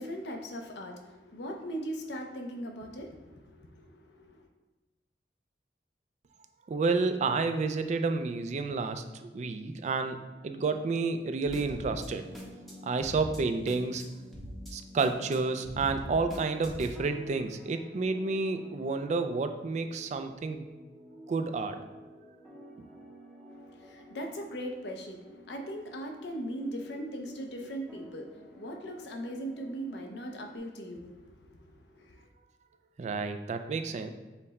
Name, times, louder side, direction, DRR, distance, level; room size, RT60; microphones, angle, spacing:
voice 1, 0.0-3.9 4.2-4.5 23.6-32.2, equal, 70° left, 3 dB, 0.6 m, -39 dB
voice 2, 6.7-10.2 10.4-12.3 12.8-14.0 14.7-20.6 21.3-21.8 33.0-34.1, right 4 dB, 40° right, 8 dB, 0.3 m, -30 dB
sound 1, 11.5-30.6, equal, ahead, 0.6 m, -47 dB
5.6 x 2.1 x 4.1 m, 1.2 s
head